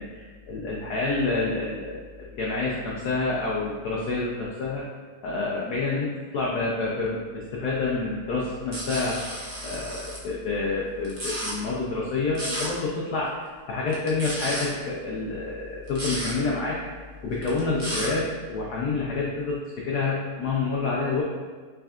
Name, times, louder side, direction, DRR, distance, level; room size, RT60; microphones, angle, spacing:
voice 1, 0.0-4.9 5.2-9.2 9.6-16.8 17.2-21.2, left 3 dB, 85° left, -4 dB, 0.8 m, -28 dB
sound 1, 8.7-10.2 11.0-11.5 12.3-12.7 13.9-14.7 15.9-16.3 17.4-18.1, right 1 dB, 50° right, 0.6 m, -32 dB
5.2 x 3.4 x 2.4 m, 1.4 s
omnidirectional pair, 2.4 m